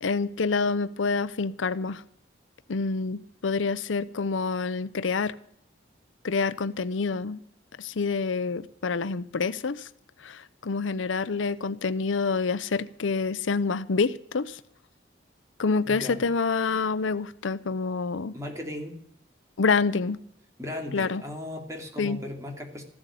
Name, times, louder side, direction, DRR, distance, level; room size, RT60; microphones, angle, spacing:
voice 1, 0.0-2.0 2.7-5.3 6.2-7.4 7.8-9.9 10.2-14.6 15.6-18.3 19.6-20.2 20.9-21.2 22.0-22.2, left 4 dB, 85° left, 16 dB, 0.6 m, -27 dB
voice 2, 15.8-16.2 18.3-19.0 20.6-22.8, left 1 dB, 15° right, 3 dB, 2.6 m, -37 dB
15.0 x 7.9 x 9.9 m, 0.67 s
head